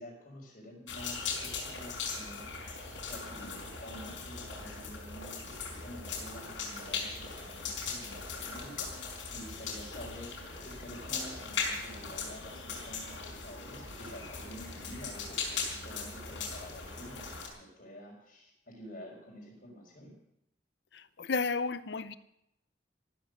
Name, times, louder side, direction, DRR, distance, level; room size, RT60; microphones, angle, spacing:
voice 1, 0.0-2.5 3.1-20.1, equal, 45° left, 4.7 m, -49 dB
sound 1, 0.9-17.5, left 4 dB, 85° left, 4.8 m, -39 dB
voice 2, 20.9-22.2, left 4 dB, 60° left, 0.6 m, -33 dB
14.5 x 13.5 x 6.6 m
head